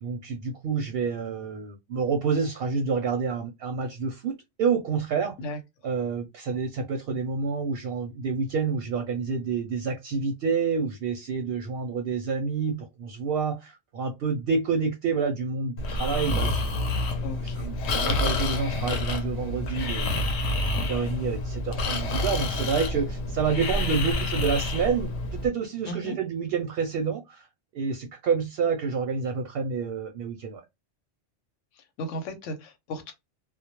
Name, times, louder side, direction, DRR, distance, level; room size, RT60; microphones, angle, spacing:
voice 1, 0.0-4.3 4.6-5.4 5.8-16.8 17.6-20.3 20.6-27.5 27.7-30.6, right 5 dB, 65° right, 0.7 m, -28 dB
Breathing, 15.8-25.5, left 2 dB, 70° left, 0.8 m, -28 dB
voice 2, 17.2-17.7 25.9-26.2 31.8-33.1, left 1 dB, 85° left, 1.0 m, -35 dB
2.2 x 2.0 x 2.9 m
omnidirectional pair, 1.3 m